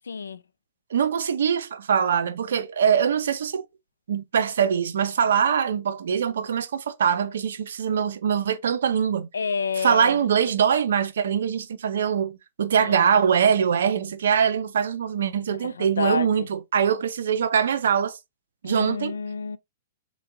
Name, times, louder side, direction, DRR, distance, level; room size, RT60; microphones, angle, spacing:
voice 1, 0.1-0.4 9.3-10.2 12.8-13.0 15.6-16.5 18.6-19.6, left 5 dB, 85° left, 0.4 m, -29 dB
voice 2, 0.9-3.6 4.1-9.3 9.8-18.2 18.6-19.1, right 7 dB, 75° right, 0.6 m, -23 dB
3.4 x 3.1 x 3.8 m
hypercardioid pair, 120°, 0 cm